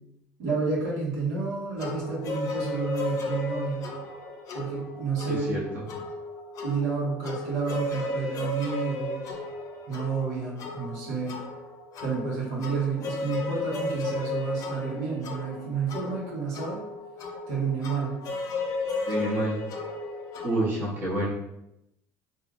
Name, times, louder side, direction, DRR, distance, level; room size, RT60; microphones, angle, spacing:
voice 1, 0.4-3.9 4.5-5.6 6.6-9.3 9.9-11.4 12.0-16.8 17.5-18.2, right 5 dB, 80° right, -6 dB, 1.3 m, -30 dB
sound 1, 1.8-20.6, left 3 dB, 45° left, 0.5 m, -35 dB
voice 2, 5.3-5.6 19.0-19.6 20.4-21.3, right 1 dB, 25° right, -6 dB, 1.0 m, -28 dB
3.4 x 2.7 x 2.5 m, 0.85 s
cardioid pair, 135°, 7 cm